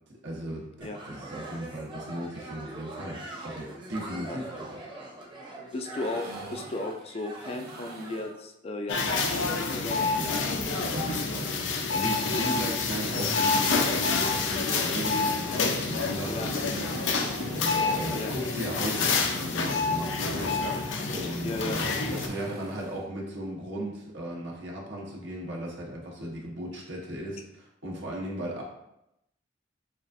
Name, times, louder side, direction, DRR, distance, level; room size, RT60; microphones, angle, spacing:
voice 1, 0.2-4.8 10.2-10.6 10.9-11.5 11.9-16.9 17.5-20.5 21.1-28.6, right 1 dB, 70° right, -3 dB, 1.1 m, -36 dB
sound 1, 0.8-8.3, right 2 dB, 25° right, 0.9 m, -43 dB
voice 2, 5.7-10.1 16.3-16.5 18.1-18.3 21.4-21.8, left 2 dB, 30° left, 5 dB, 0.4 m, -35 dB
sound 2, 6.0-8.4 9.4-11.3 11.7-13.7 15.1-23.0, right 1 dB, 55° right, 0.7 m, -44 dB
sound 3, 8.9-22.3, left 4 dB, 75° left, 0.6 m, -28 dB
7.0 x 2.5 x 2.6 m, 0.84 s
head